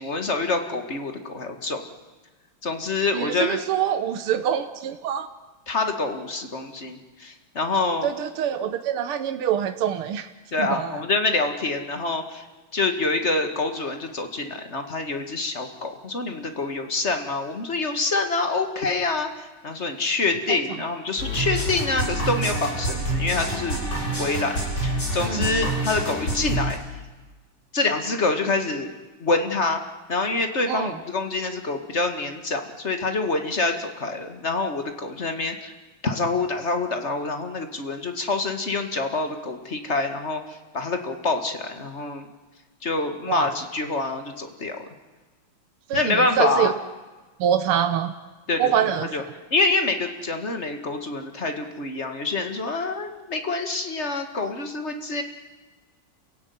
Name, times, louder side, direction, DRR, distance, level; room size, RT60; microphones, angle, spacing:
voice 1, 0.0-1.8 2.6-3.6 5.7-8.1 10.5-12.4 12.7-23.8 24.2-26.8 27.7-28.9 29.2-29.8 30.1-35.7 36.0-42.3 42.8-44.8 45.9-46.7 48.5-49.2 49.5-55.2, left 3 dB, 30° left, 6 dB, 2.1 m, -26 dB
voice 2, 3.1-5.3 8.0-10.3 10.6-10.9 25.2-25.5 30.7-30.9 43.3-43.5 45.9-46.7 47.4-48.1 48.6-49.1, right 9 dB, 85° right, 9 dB, 1.9 m, -25 dB
sound 1, 21.2-26.7, right 1 dB, 50° left, 8.5 m, -27 dB
27.5 x 16.5 x 9.5 m, 1.3 s
omnidirectional pair, 2.4 m